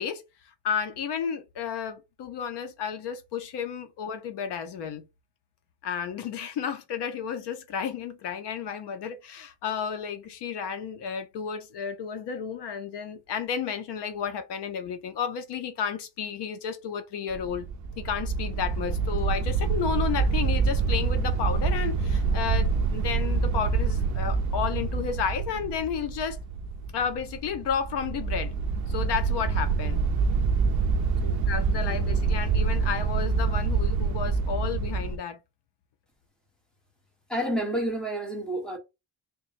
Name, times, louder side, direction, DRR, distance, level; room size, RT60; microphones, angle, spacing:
voice 1, 0.0-5.1 5.8-17.7 18.0-26.4 26.9-28.5 28.9-30.0 31.2-35.4, left 7 dB, 60° left, 0.6 m, -32 dB
sound 1, 17.3-35.2, right 4 dB, 40° right, 0.4 m, -26 dB
voice 2, 31.8-32.2 37.3-38.8, right 1 dB, ahead, 0.9 m, -30 dB
3.4 x 2.1 x 4.0 m
cardioid pair, 170°, 46 cm